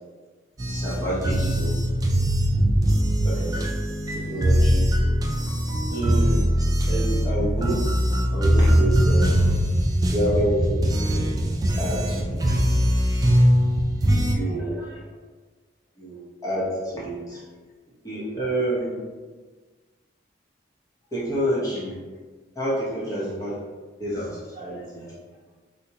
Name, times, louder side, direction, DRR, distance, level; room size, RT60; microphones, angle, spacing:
sound 1, 0.6-14.3, equal, 20° right, 0.3 m, -21 dB
voice 1, 0.7-1.8 3.2-3.7 4.1-4.9 5.9-6.4 6.9-7.8 8.3-9.3 10.1-11.3 11.8-12.8 14.3-15.0 16.0-17.4 18.0-19.0 21.1-22.0 22.6-23.6 24.0-25.1, right 1 dB, 20° left, -8 dB, 0.9 m, -28 dB
4.1 x 2.1 x 2.8 m, 1.3 s
head